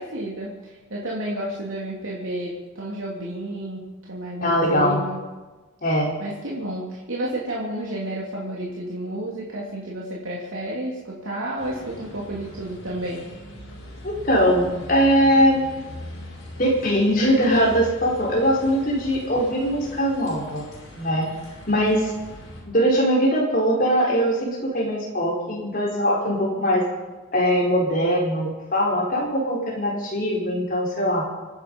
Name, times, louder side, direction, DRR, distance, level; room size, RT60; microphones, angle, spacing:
voice 1, 0.0-5.2 6.2-13.2, right 1 dB, 90° right, -4 dB, 2.9 m, -31 dB
voice 2, 4.4-5.0 5.8-6.1 14.0-15.6 16.6-20.6 20.9-21.3 21.7-22.1 22.7-26.9 27.3-31.3, equal, 45° left, -3 dB, 4.3 m, -21 dB
sound 1, 11.6-22.6, left 1 dB, 70° left, 5.3 m, -41 dB
26.0 x 10.0 x 5.4 m, 1.2 s
head